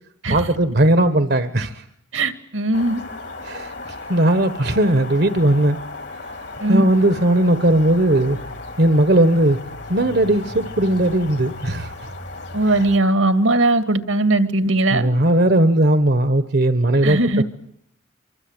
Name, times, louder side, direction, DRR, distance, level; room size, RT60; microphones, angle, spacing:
voice 1, 0.3-1.8 3.4-3.7 4.1-5.8 6.7-8.4 8.8-9.6 9.9-11.9 14.9-17.4, right 1 dB, 50° right, 10 dB, 1.3 m, -17 dB
voice 2, 2.1-3.0 6.6-6.8 12.5-15.1 17.0-17.4, right 2 dB, 80° right, 9 dB, 2.3 m, -19 dB
sound 1, 2.7-13.0, left 2 dB, 55° left, 2.6 m, -35 dB
25.0 x 25.0 x 9.0 m, 0.75 s
head